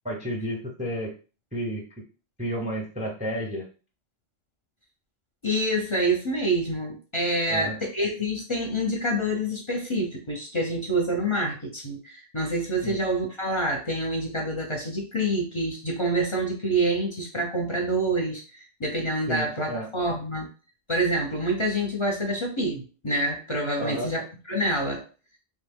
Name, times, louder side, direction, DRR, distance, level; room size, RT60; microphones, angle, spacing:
voice 1, 0.0-1.1 1.5-1.8 2.4-3.7 7.5-7.8 12.8-13.0 19.3-19.9 23.8-24.1, equal, 10° right, 0 dB, 0.5 m, -31 dB
voice 2, 5.4-20.5 20.9-25.0, right 1 dB, 35° left, -1 dB, 0.6 m, -27 dB
3.1 x 2.1 x 3.5 m, 0.35 s
omnidirectional pair, 1.0 m